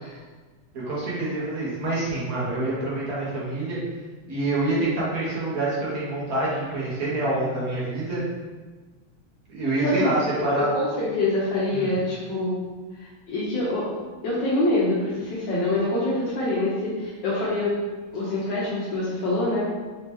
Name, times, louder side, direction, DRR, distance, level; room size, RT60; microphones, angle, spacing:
voice 1, 0.7-3.8 4.3-8.2 9.5-10.7 11.7-11.9, right 2 dB, 50° right, -7 dB, 1.4 m, -26 dB
voice 2, 10.4-12.6 13.0-13.9 14.2-17.7 18.1-19.7, left 2 dB, 70° left, -8 dB, 1.4 m, -25 dB
4.2 x 2.8 x 3.5 m, 1.3 s
omnidirectional pair, 2.2 m